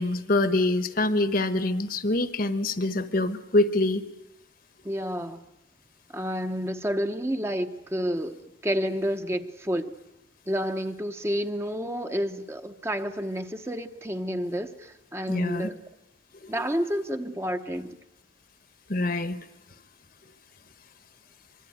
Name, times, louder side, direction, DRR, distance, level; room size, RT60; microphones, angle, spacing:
voice 1, 0.0-4.0 15.3-15.7 18.9-19.4, left 2 dB, 50° left, 1.2 m, -25 dB
voice 2, 4.8-5.4 6.1-9.9 10.5-15.7 16.5-18.0, equal, 15° right, 1.0 m, -30 dB
25.0 x 22.5 x 9.5 m
head